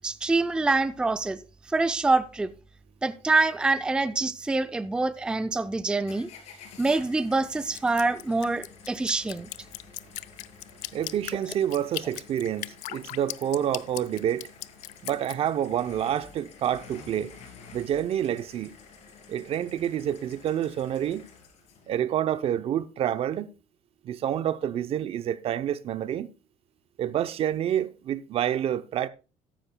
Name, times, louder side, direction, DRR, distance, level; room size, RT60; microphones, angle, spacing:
voice 1, 0.0-1.4 1.7-2.5 3.0-6.3 6.8-9.5, right 3 dB, 5° right, 0.4 m, -25 dB
sound 1, 6.1-22.0, left 6 dB, 60° left, 2.8 m, -51 dB
Drip, 7.7-15.4, left 18 dB, 80° left, 0.4 m, -38 dB
voice 2, 10.9-14.5 15.0-17.4 17.7-18.8 19.3-21.3 21.9-23.5 24.0-26.3 27.0-29.1, right 10 dB, 50° right, 0.6 m, -28 dB
13.5 x 10.0 x 2.2 m
cardioid pair, 120°, 13 cm